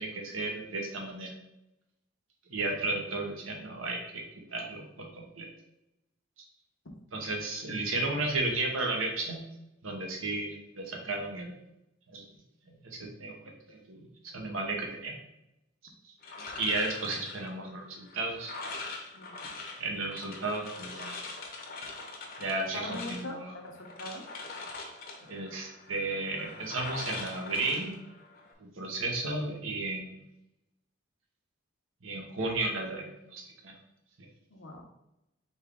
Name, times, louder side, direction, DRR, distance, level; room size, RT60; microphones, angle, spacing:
voice 1, 0.0-1.3 2.5-4.2 4.5-5.5 7.1-9.4 9.8-11.5 12.1-12.2 12.7-13.3 13.7-15.2 16.4-18.5 19.8-21.2 22.4-23.5 25.3-27.9 28.8-30.1 32.0-33.7 34.2-34.3, right 2 dB, 90° right, 0 dB, 1.1 m, -34 dB
sound 1, 16.2-28.5, left 3 dB, 50° left, 0.8 m, -43 dB
voice 2, 22.7-24.2 34.5-34.8, left 2 dB, 80° left, 2 dB, 0.9 m, -41 dB
4.4 x 3.4 x 3.5 m, 0.88 s
head